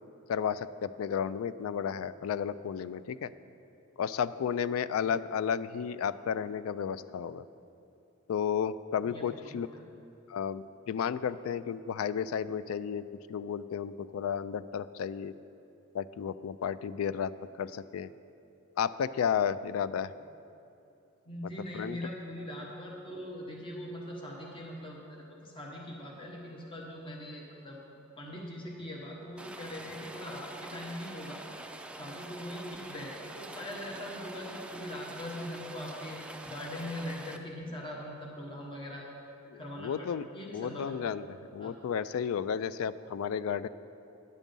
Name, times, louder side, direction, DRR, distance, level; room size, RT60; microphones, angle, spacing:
voice 1, 0.3-3.3 4.0-7.4 8.3-9.7 10.3-13.0 13.3-15.3 15.9-17.3 17.6-18.1 18.8-20.1 21.4-22.0 39.5-40.2 40.5-41.2 41.5-43.7, left 7 dB, 80° left, 15 dB, 0.3 m, -32 dB
voice 2, 21.3-27.8 28.2-31.4 32.0-39.1 39.5-40.9 41.6-41.7, left 1 dB, 25° left, -2 dB, 1.1 m, -41 dB
Rain, 29.4-37.4, right 1 dB, 5° right, 0.4 m, -45 dB
10.5 x 7.3 x 5.3 m, 2.7 s
head